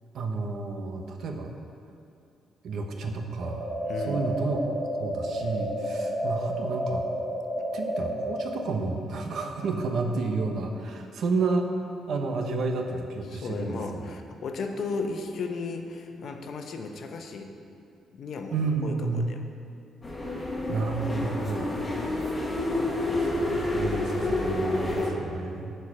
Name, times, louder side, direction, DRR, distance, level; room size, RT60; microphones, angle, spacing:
voice 1, 0.1-1.5 2.6-3.7 4.0-4.6 5.0-7.0 7.7-11.7 12.1-14.0 18.5-19.3 20.3-20.4 20.7-21.8 22.1-22.3 22.8-25.8, right 3 dB, 65° right, 4 dB, 0.9 m, -31 dB
sound 1, 3.4-8.4, equal, 45° right, 2.1 m, -31 dB
voice 2, 3.9-4.2 13.3-17.5 18.1-18.6 18.8-19.4 22.0-22.2, left 4 dB, 60° left, 4 dB, 0.8 m, -35 dB
sound 2, 20.0-25.1, left 2 dB, 20° left, 1.4 m, -29 dB
9.6 x 4.6 x 6.0 m, 2.5 s
cardioid pair, 90°, 0 cm